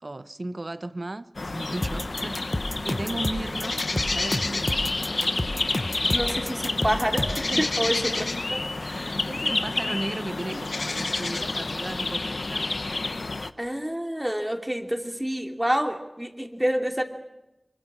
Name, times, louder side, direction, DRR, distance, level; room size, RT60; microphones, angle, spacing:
voice 1, 0.0-4.9 7.5-7.6 8.8-12.7, right 2 dB, 55° right, 1.0 m, -35 dB
sound 1, 1.3-13.5, left 2 dB, 85° left, 0.9 m, -29 dB
sound 2, 1.8-7.5, left 1 dB, 35° left, 1.2 m, -30 dB
voice 2, 6.1-8.6 8.8-9.2 10.5-10.6 13.6-17.0, equal, 10° right, 2.9 m, -28 dB
25.0 x 23.5 x 6.2 m
wide cardioid pair, 55°, 0 cm